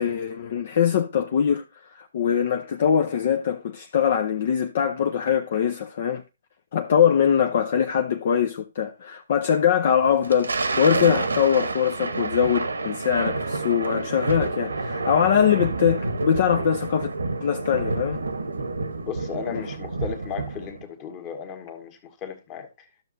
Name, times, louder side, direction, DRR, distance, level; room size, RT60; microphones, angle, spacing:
voice 1, 0.0-1.6 1.9-6.2 6.7-17.1 17.4-18.2 19.5-19.6, left 8 dB, 50° left, 0.7 m, -22 dB
Thunder, 10.1-20.8, right 3 dB, 80° right, 1.1 m, -29 dB
voice 2, 19.1-22.9, left 7 dB, 25° left, 1.5 m, -35 dB
12.0 x 6.6 x 2.6 m
figure-of-eight pair, 135°, 0 cm